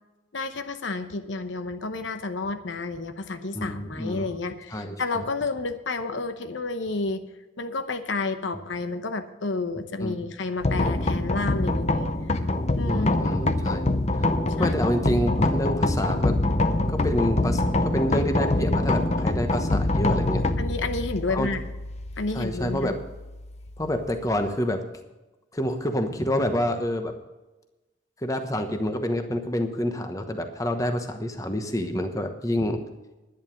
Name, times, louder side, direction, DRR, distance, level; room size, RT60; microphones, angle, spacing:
voice 1, 0.3-7.2 7.6-12.1 12.8-13.2 14.6-14.7 20.6-21.6 22.2-22.9, left 3 dB, 75° left, 8 dB, 0.9 m, -30 dB
voice 2, 3.5-4.3 4.7-5.2 10.0-10.2 12.9-13.8 14.1-14.3 14.6-16.4 16.9-20.4 21.3-21.5 22.3-23.0 23.8-24.9 25.5-27.1 28.2-32.8, equal, 15° left, 6 dB, 1.1 m, -28 dB
sound 1, 10.6-24.5, left 2 dB, 35° left, 0.7 m, -25 dB
11.0 x 10.5 x 5.2 m, 1.1 s
head